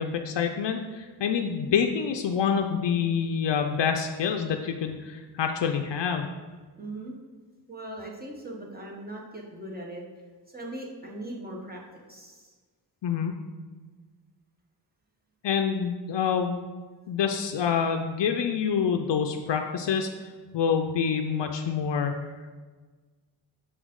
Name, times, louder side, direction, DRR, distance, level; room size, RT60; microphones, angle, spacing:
voice 1, 0.0-6.3 13.0-13.3 15.4-16.7 17.1-20.3 20.5-22.1, left 7 dB, 85° left, 4 dB, 0.5 m, -27 dB
voice 2, 6.8-7.2 7.7-10.0 10.5-12.5, right 1 dB, 20° right, -2 dB, 1.1 m, -39 dB
6.5 x 5.1 x 3.7 m, 1.4 s
wide cardioid pair, 115°, 42 cm